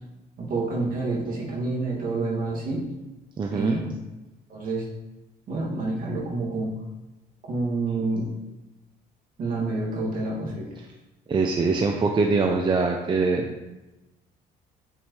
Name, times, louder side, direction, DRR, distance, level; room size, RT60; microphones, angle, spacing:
voice 1, 0.4-2.8 3.5-3.9 4.5-4.9 5.5-6.7 7.5-8.3 9.4-10.7, right 2 dB, 55° right, -3 dB, 2.2 m, -28 dB
voice 2, 3.4-3.8 11.3-13.5, right 4 dB, 30° right, 2 dB, 0.6 m, -23 dB
8.8 x 4.6 x 3.2 m, 1.0 s
cardioid pair, 110°, 17 cm